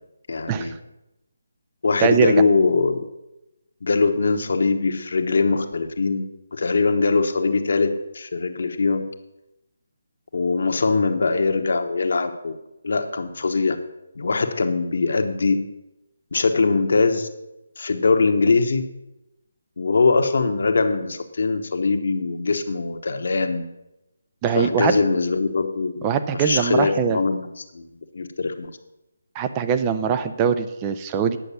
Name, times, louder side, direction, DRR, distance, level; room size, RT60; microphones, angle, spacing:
voice 1, 0.3-0.7 1.8-3.0 3.8-6.2 6.5-9.0 10.3-12.5 12.8-13.8 14.1-15.7 16.3-17.3 17.8-18.8 19.8-23.6 24.5-27.9 28.1-28.7, left 4 dB, 65° left, 7 dB, 1.1 m, -22 dB
voice 2, 2.0-2.4 24.4-25.0 26.0-27.2 29.3-31.4, right 7 dB, 20° right, 9 dB, 0.6 m, -22 dB
9.9 x 6.4 x 7.0 m, 0.93 s
figure-of-eight pair, 155°, 0 cm